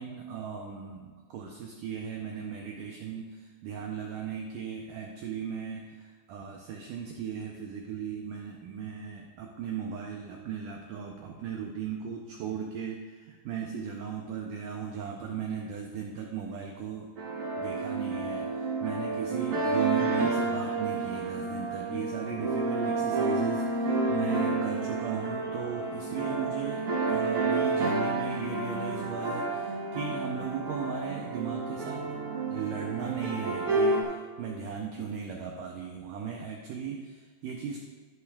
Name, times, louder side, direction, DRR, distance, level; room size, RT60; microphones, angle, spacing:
voice 1, 0.0-17.1 17.6-26.8 27.1-32.2 32.5-37.8, right 7 dB, 90° right, 1 dB, 1.9 m, -37 dB
sound 1, 17.2-34.0, right 3 dB, 45° right, 2.5 m, -30 dB
11.5 x 11.0 x 2.4 m, 1.5 s
omnidirectional pair, 4.8 m